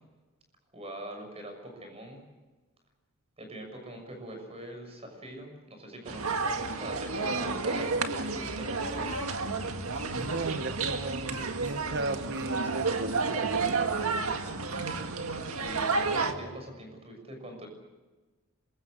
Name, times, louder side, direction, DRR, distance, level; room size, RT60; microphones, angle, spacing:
voice 1, 0.7-2.3 3.4-9.1 15.6-17.7, right 1 dB, 30° right, 4 dB, 6.6 m, -43 dB
sound 1, 6.0-16.3, right 4 dB, 80° right, 1.9 m, -31 dB
sound 2, 9.0-15.1, equal, 10° left, 7.7 m, -50 dB
voice 2, 10.2-13.9, right 2 dB, 50° right, 11 dB, 0.9 m, -36 dB
26.5 x 23.0 x 6.5 m, 1.2 s
head